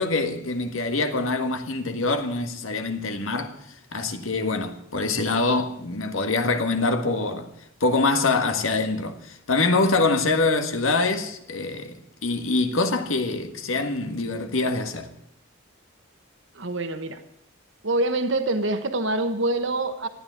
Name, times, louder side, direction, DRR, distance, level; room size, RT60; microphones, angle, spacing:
voice 1, 0.0-3.6 3.9-7.5 7.8-15.1, left 3 dB, 80° left, 1.6 m, -24 dB
voice 2, 16.5-17.2 17.8-20.1, right 2 dB, 65° right, 1.1 m, -25 dB
14.0 x 9.9 x 9.4 m
head